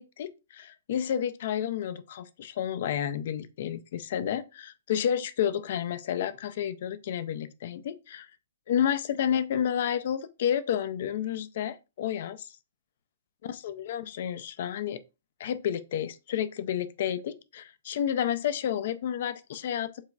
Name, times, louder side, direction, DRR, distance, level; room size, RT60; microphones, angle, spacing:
voice 1, 0.0-8.3 8.7-12.5 13.4-15.0 15.4-20.0, left 9 dB, 50° left, 0.5 m, -30 dB
7.2 x 2.9 x 2.3 m
figure-of-eight pair, 115°, 0 cm